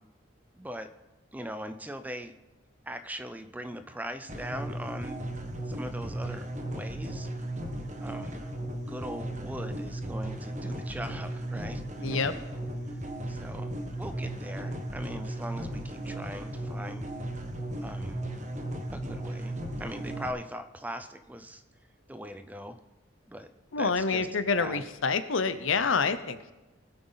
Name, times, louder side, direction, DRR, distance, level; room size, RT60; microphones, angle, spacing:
voice 1, 0.6-0.9 1.3-2.3 2.9-5.2 5.7-7.3 8.0-8.4 8.7-11.8 13.3-17.1 17.8-18.2 18.9-21.6 22.1-22.8 23.3-23.5 23.8-24.3 24.5-24.8, equal, 10° right, 10 dB, 0.5 m, -40 dB
sound 1, 4.3-20.3, right 1 dB, 35° right, 1.2 m, -36 dB
voice 2, 12.0-12.4 23.7-26.5, left 4 dB, 85° left, 12 dB, 0.8 m, -27 dB
19.5 x 8.0 x 4.0 m, 1.0 s
head